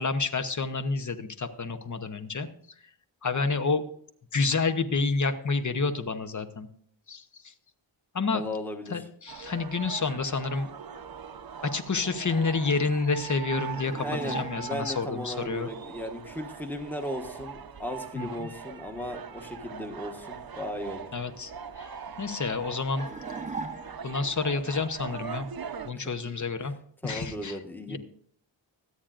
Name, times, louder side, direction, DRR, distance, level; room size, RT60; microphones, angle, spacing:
voice 1, 0.0-2.5 3.2-3.8 4.3-6.7 7.1-7.2 8.1-8.4 8.9-10.7 11.7-15.7 18.2-18.3 21.1-21.5 21.8-21.9 22.2-23.1 24.0-25.5 25.9-26.7 27.0-27.5 27.9-28.0, left 4 dB, 35° left, 9 dB, 0.9 m, -29 dB
voice 2, 8.3-9.0 14.0-21.1 26.0-26.1 27.0-28.0, left 1 dB, 5° left, 5 dB, 1.1 m, -36 dB
sound 1, 9.3-25.9, right 7 dB, 45° right, 0.8 m, -41 dB
sound 2, 13.8-14.9 23.0-24.3, right 3 dB, 15° right, 0.7 m, -38 dB
24.0 x 8.8 x 2.5 m, 0.63 s
wide cardioid pair, 160°, 49 cm